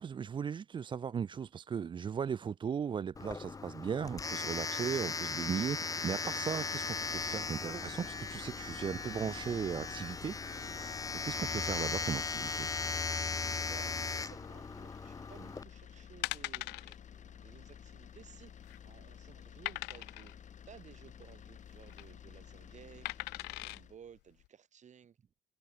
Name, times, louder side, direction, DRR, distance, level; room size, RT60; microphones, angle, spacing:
voice 1, 0.0-12.7, right 7 dB, 30° right, 0.4 m, -37 dB
Domestic sounds home sounds, 3.1-15.6, left 4 dB, 20° left, 1.0 m, -38 dB
sound 1, 6.1-24.0, left 8 dB, 45° left, 4.7 m, -53 dB
voice 2, 13.7-25.2, right 8 dB, 45° right, 7.9 m, -57 dB
sound 2, 15.7-15.8 16.2-17.0 17.3-17.5 17.7-17.8 18.4-18.9 19.7-20.3 21.7-22.0 23.1-23.8 24.4-24.5, left 22 dB, 90° left, 0.5 m, -40 dB
cardioid pair, 110°, 17 cm